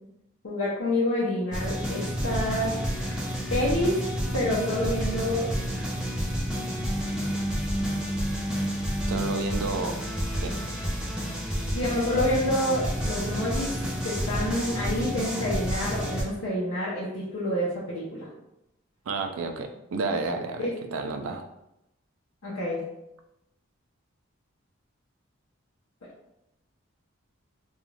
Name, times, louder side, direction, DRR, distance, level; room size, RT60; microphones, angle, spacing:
voice 1, 0.4-3.2 3.5-4.0 4.3-5.5 11.7-13.7 14.0-18.3 20.6-20.7 22.4-22.8, left 1 dB, 80° left, -7 dB, 0.6 m, -28 dB
sound 1, 1.5-16.2, equal, 5° right, 0.4 m, -29 dB
voice 2, 9.1-9.9 10.4-10.5 19.1-21.5, right 3 dB, 80° right, 5 dB, 0.4 m, -31 dB
2.4 x 2.3 x 3.1 m, 0.85 s
head